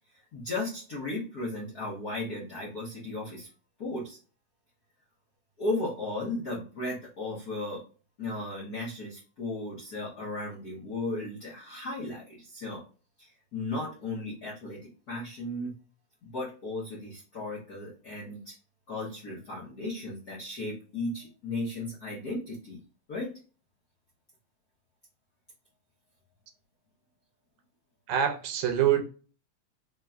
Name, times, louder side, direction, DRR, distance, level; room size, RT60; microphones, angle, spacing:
voice 1, 0.3-3.5 3.8-4.2 5.6-7.8 8.2-12.8 13.2-14.8 15.1-15.7 16.2-18.5 18.9-22.8 23.1-23.3, left 2 dB, 60° left, 1.0 m, -35 dB
voice 2, 28.1-29.0, right 10 dB, 85° right, 2.1 m, -25 dB
4.4 x 3.0 x 2.4 m
omnidirectional pair, 3.3 m